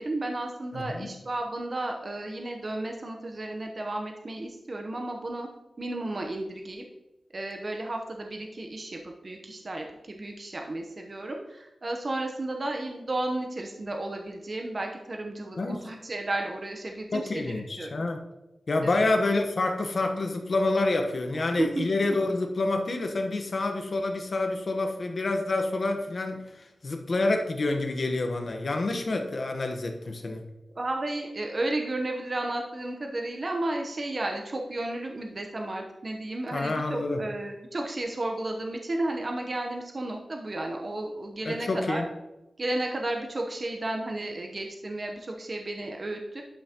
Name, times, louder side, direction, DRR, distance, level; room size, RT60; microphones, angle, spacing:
voice 1, 0.0-5.5 5.8-6.8 7.3-18.0 18.8-19.1 21.3-21.9 30.7-42.0 42.6-46.4, right 2 dB, 45° right, 2 dB, 0.8 m, -33 dB
voice 2, 0.7-1.1 15.6-15.9 17.1-18.2 18.7-30.4 36.5-37.2 41.4-42.0, left 2 dB, 55° left, 4 dB, 1.1 m, -28 dB
11.5 x 5.6 x 2.9 m, 0.99 s
cardioid pair, 65°, 0 cm